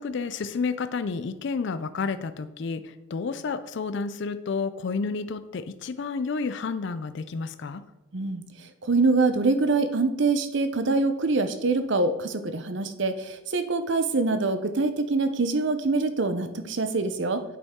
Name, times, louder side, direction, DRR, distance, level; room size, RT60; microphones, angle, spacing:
voice 1, 0.0-7.8, left 4 dB, 55° left, 12 dB, 0.4 m, -30 dB
voice 2, 8.8-17.4, right 3 dB, 60° right, 9 dB, 0.6 m, -24 dB
9.1 x 5.3 x 3.6 m, 1.1 s
head